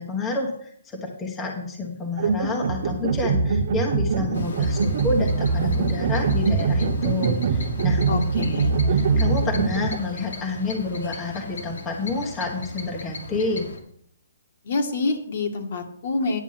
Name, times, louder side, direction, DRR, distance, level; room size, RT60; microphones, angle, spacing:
voice 1, 0.0-8.2 8.9-13.6, left 3 dB, 10° left, 0 dB, 1.3 m, -29 dB
sound 1, 2.2-10.0, right 4 dB, 50° right, 0.9 m, -23 dB
sound 2, 4.3-13.8, left 2 dB, 70° left, 2.1 m, -37 dB
voice 2, 8.1-8.7 14.7-16.4, left 3 dB, 50° left, 4 dB, 1.7 m, -26 dB
10.5 x 7.2 x 5.7 m, 0.64 s
hypercardioid pair, 165°, 0 cm